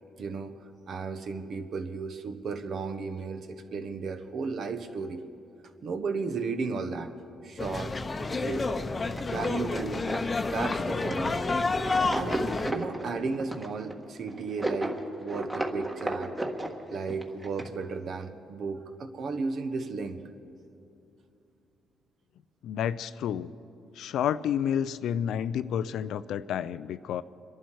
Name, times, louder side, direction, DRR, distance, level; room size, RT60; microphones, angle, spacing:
voice 1, 0.2-5.2 5.8-7.1 7.4-8.0 8.4-8.7 9.3-10.1 10.5-11.5 12.1-16.3 16.9-20.2, right 4 dB, 60° right, 8 dB, 1.2 m, -34 dB
sound 1, 7.6-12.7, left 3 dB, 30° left, 0.8 m, -29 dB
sound 2, 9.2-17.7, right 1 dB, 20° right, 1.5 m, -34 dB
voice 2, 22.6-23.5 24.0-27.2, left 9 dB, 80° left, 15 dB, 0.4 m, -30 dB
26.0 x 11.0 x 4.7 m, 2.7 s
cardioid pair, 90°, 0 cm